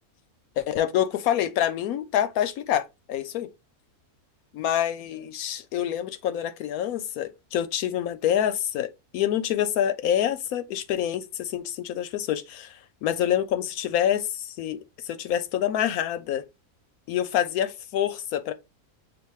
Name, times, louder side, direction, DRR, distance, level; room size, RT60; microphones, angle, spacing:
voice 1, 0.6-3.5 4.5-16.4 17.1-18.5, left 10 dB, 75° left, 1.0 m, -27 dB
6.8 x 2.5 x 3.0 m
omnidirectional pair, 1.6 m